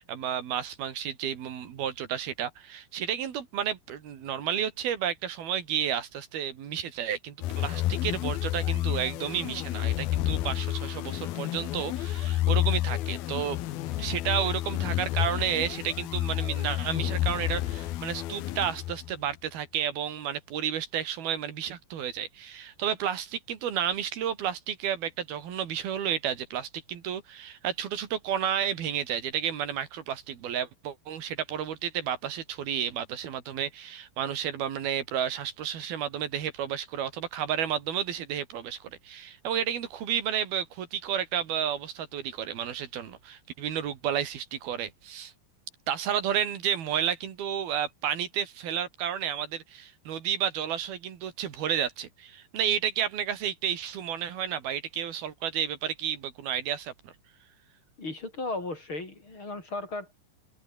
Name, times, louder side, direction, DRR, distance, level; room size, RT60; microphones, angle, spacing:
voice 1, 0.0-13.6 14.0-45.3 45.9-57.1, right 9 dB, 85° right, 4.4 m, -31 dB
sound 1, 7.4-19.2, left 14 dB, 85° left, 3.1 m, -30 dB
voice 2, 58.0-60.2, left 2 dB, 35° left, 6.3 m, -35 dB
open air
omnidirectional pair, 4.3 m